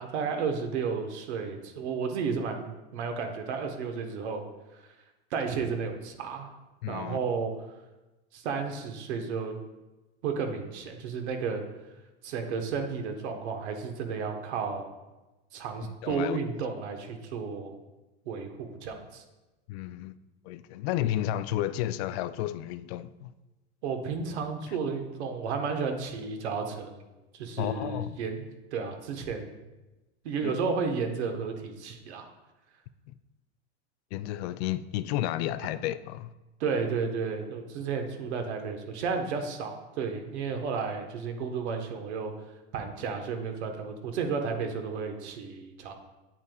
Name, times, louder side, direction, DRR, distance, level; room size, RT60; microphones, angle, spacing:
voice 1, 0.0-4.4 5.3-6.5 6.9-7.5 8.3-9.6 10.2-11.6 12.2-14.9 15.5-17.8 18.3-19.2 23.8-27.0 27.3-29.5 30.2-32.3 35.6-35.7 36.6-42.3 42.7-45.9, right 5 dB, 90° right, 1.2 m, -32 dB
voice 2, 6.8-7.2 15.8-16.4 19.7-20.2 20.4-23.3 27.6-28.2 30.4-30.6 33.1-33.2 34.1-36.3, left 13 dB, 70° left, 0.5 m, -32 dB
8.5 x 7.9 x 2.3 m
supercardioid pair, 120°, 33 cm